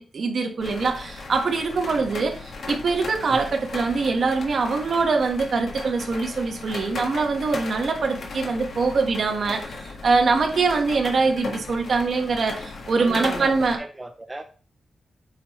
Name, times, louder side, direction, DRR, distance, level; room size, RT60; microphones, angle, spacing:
voice 1, 0.0-9.7 10.0-13.8, right 4 dB, 55° right, 1.3 m, -23 dB
sound 1, 0.6-13.8, left 3 dB, 65° left, 1.5 m, -37 dB
voice 2, 13.0-14.4, right 1 dB, 15° right, 0.5 m, -36 dB
8.5 x 5.7 x 3.1 m
wide cardioid pair, 165°, 0 cm